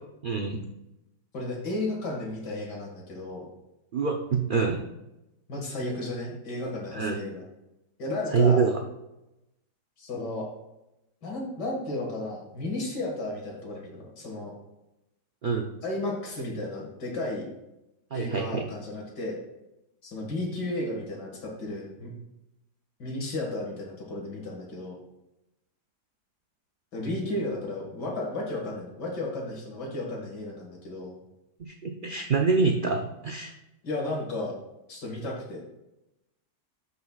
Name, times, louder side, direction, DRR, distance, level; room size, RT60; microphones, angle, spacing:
voice 1, 0.2-0.6 3.9-4.8 6.9-7.2 8.3-8.7 15.4-15.6 18.1-18.6 31.6-33.5, right 5 dB, 65° right, 3 dB, 0.5 m, -25 dB
voice 2, 1.3-3.5 5.5-7.4 8.0-8.7 10.0-10.5 11.2-14.5 15.8-17.4 18.1-19.4 20.0-22.1 23.0-25.0 26.9-31.1 33.8-34.5 34.9-35.6, left 2 dB, 90° left, -1 dB, 2.5 m, -33 dB
14.0 x 5.6 x 2.4 m, 0.91 s
omnidirectional pair, 1.8 m